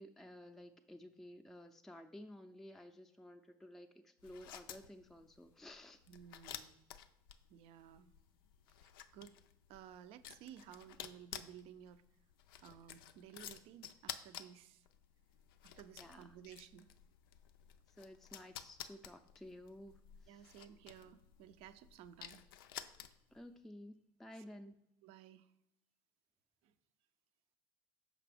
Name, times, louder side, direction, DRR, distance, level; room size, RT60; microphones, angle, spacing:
voice 1, 0.0-6.0 16.0-16.3 17.9-20.5 23.3-24.8, left 1 dB, ahead, 4 dB, 0.4 m, -54 dB
sound 1, 4.2-23.4, left 10 dB, 80° left, 0.4 m, -53 dB
voice 2, 6.1-6.8 7.5-8.1 8.8-9.3 9.7-12.0 12.6-14.9 15.6-16.9 20.3-22.4 24.5-24.6 25.0-25.5 26.6-26.7, right 9 dB, 60° right, 12 dB, 0.5 m, -56 dB
5.9 x 5.0 x 3.4 m, 0.80 s
hypercardioid pair, 70°, 11 cm